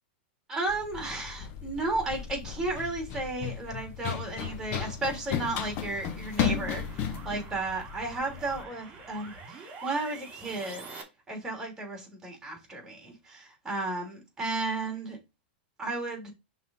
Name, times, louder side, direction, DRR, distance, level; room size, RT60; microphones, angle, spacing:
voice 1, 0.5-10.8 11.3-15.2 15.8-16.3, right 2 dB, 10° right, 2.9 m, -34 dB
Run, 0.7-8.6, left 8 dB, 40° left, 0.9 m, -35 dB
sound 1, 4.5-11.0, right 4 dB, 25° right, 2.7 m, -47 dB
5.9 x 3.8 x 5.4 m
supercardioid pair, 140°, 6 cm